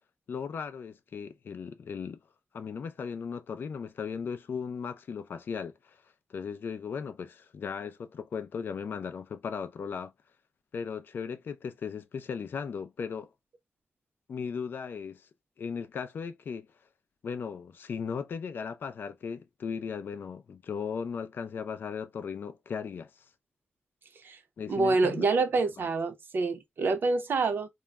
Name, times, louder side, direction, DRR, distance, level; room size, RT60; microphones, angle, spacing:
voice 1, 0.3-2.2 2.5-6.0 6.3-10.1 10.7-13.3 14.3-15.3 15.6-16.7 17.2-23.2 24.6-25.3 25.8-25.9, left 6 dB, 60° left, 0.3 m, -37 dB
voice 2, 24.7-27.7, right 3 dB, 60° right, 0.5 m, -27 dB
2.2 x 2.0 x 3.3 m
wide cardioid pair, 155°, 4 cm